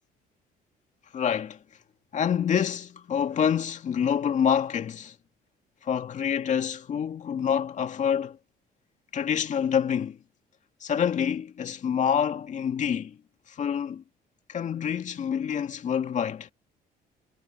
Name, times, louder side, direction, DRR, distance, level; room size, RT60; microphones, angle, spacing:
voice 1, 1.1-1.6 2.1-5.1 5.8-8.4 9.1-10.2 10.8-13.2 13.5-14.0 14.5-16.5, left 8 dB, 45° left, 2.2 m, -27 dB
cardioid pair, 110°, 17 cm